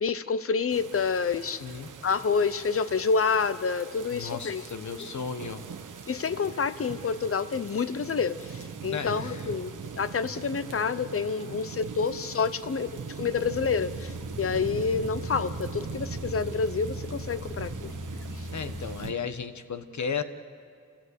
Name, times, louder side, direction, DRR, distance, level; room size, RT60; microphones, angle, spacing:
voice 1, 0.0-1.6 2.0-4.6 6.1-17.9 18.4-18.5, left 5 dB, 45° left, 13 dB, 0.8 m, -28 dB
sound 1, 0.7-19.1, right 6 dB, 75° right, 1.2 m, -41 dB
voice 2, 4.1-5.7 8.9-9.5 18.5-20.2, left 6 dB, 65° left, 9 dB, 1.3 m, -34 dB
sound 2, 13.3-18.9, left 1 dB, ahead, 5.3 m, -40 dB
28.5 x 16.5 x 8.2 m, 2.3 s
wide cardioid pair, 110°, 31 cm